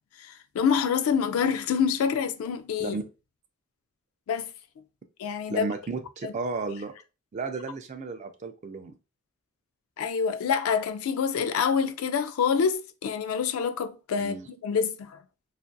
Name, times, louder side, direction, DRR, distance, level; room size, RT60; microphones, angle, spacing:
voice 1, 0.2-3.0 4.3-4.5 5.2-5.7 6.2-6.3 10.0-14.4 14.6-15.2, left 6 dB, 80° left, 0.3 m, -26 dB
voice 2, 5.5-6.9 7.3-8.9 14.2-14.5, right 4 dB, 35° right, 0.3 m, -33 dB
2.5 x 2.4 x 2.2 m
head